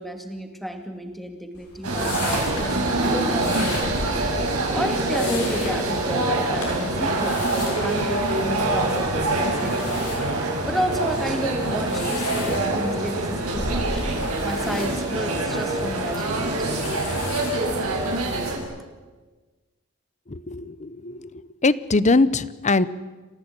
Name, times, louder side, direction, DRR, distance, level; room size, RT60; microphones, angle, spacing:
voice 1, 0.0-4.2 4.7-10.1 10.6-14.0 14.4-16.5, equal, ahead, 5 dB, 2.4 m, -32 dB
sound 1, 1.5-18.5, left 2 dB, 85° left, 7.1 m, -37 dB
sound 2, 1.8-18.6, right 2 dB, 75° right, 6.0 m, -25 dB
voice 2, 20.3-22.8, left 3 dB, 30° left, 17 dB, 0.8 m, -22 dB
29.0 x 15.0 x 9.1 m, 1.3 s
head